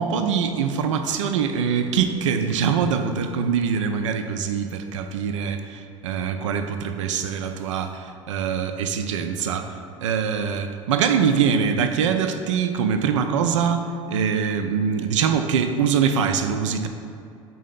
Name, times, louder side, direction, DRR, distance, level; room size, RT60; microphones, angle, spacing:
voice 1, 0.0-16.9, right 6 dB, 65° right, 7 dB, 0.5 m, -23 dB
4.6 x 4.0 x 5.7 m, 2.5 s
figure-of-eight pair, 70°, 17 cm